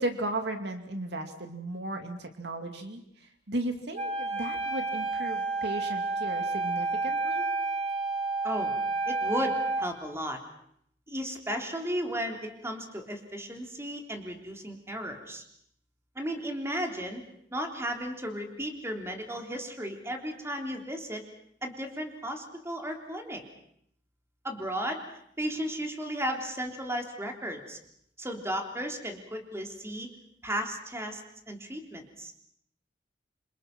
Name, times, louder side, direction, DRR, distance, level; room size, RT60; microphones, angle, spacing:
voice 1, 0.0-7.5, right 1 dB, 65° right, 6 dB, 2.5 m, -35 dB
Wind instrument woodwind instrument, 4.0-9.9, right 3 dB, 35° right, 3.3 m, -30 dB
voice 2, 9.1-10.4 11.1-15.4 16.2-17.2 17.5-21.2 21.6-23.4 24.4-25.0 25.4-27.8 28.2-30.1 30.4-32.3, equal, 15° right, 3 dB, 3.5 m, -35 dB
27.5 x 26.0 x 6.1 m, 0.70 s
head